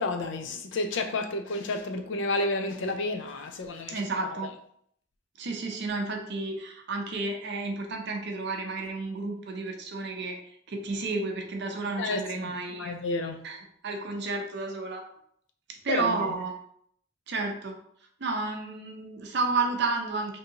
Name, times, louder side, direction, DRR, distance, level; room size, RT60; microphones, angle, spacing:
voice 1, 0.0-4.1 12.0-13.5 15.9-16.3, left 2 dB, 60° left, 0.4 m, -31 dB
voice 2, 3.9-4.5 5.4-10.4 10.7-13.0 13.4-15.0 15.8-16.5 17.3-17.8 18.2-20.4, right 3 dB, 55° right, 0.6 m, -31 dB
3.6 x 2.7 x 2.8 m
head